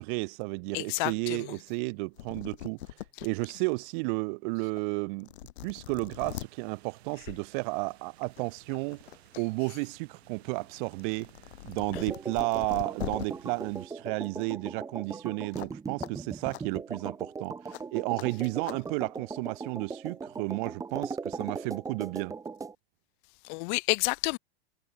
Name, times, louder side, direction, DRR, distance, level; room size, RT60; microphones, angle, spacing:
voice 1, 0.0-2.8 3.2-5.3 5.6-11.3 11.6-22.3, right 30 dB, 50° right, 1.0 m, -32 dB
voice 2, 0.7-1.6 3.2-3.3 23.4-24.4, left 28 dB, 50° left, 0.6 m, -30 dB
sound 1, 1.9-2.0 2.2-3.3 3.8-3.9 4.8-4.9 5.2-6.5 7.8-8.0 8.4-9.4 9.8-13.3 15.5-15.7 16.0-16.1 16.5-16.6 17.7-17.8 18.2-18.3 18.6-18.8, left 14 dB, 80° left, 1.5 m, -41 dB
sound 2, 6.1-13.9, right 15 dB, 75° right, 6.4 m, -58 dB
sound 3, 11.9-22.7, right 4 dB, 10° right, 1.2 m, -39 dB
supercardioid pair, 140°, 32 cm